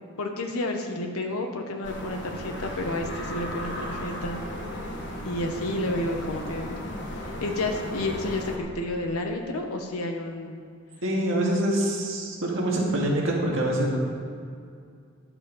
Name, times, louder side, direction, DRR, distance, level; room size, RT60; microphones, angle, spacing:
voice 1, 0.2-4.4 5.2-6.7 7.1-10.6, left 1 dB, 90° left, 3 dB, 1.1 m, -30 dB
sound 1, 1.8-8.6, left 1 dB, 55° left, 1.4 m, -35 dB
voice 2, 11.0-14.0, right 1 dB, 60° right, -3 dB, 2.2 m, -25 dB
11.0 x 7.3 x 5.2 m, 2.3 s
head